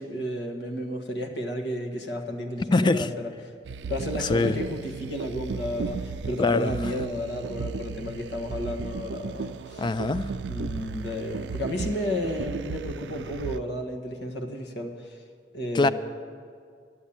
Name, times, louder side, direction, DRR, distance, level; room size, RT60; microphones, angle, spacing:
voice 1, 0.0-3.5 3.9-9.9 10.5-15.2 15.5-15.9, equal, 75° left, 1.5 m, -32 dB
voice 2, 2.7-3.1 4.2-4.6 6.4-6.7 9.8-10.3 15.7-15.9, left 3 dB, 25° left, 0.3 m, -23 dB
sound 1, 3.6-13.6, right 4 dB, 75° right, 0.4 m, -35 dB
12.0 x 8.3 x 8.7 m
head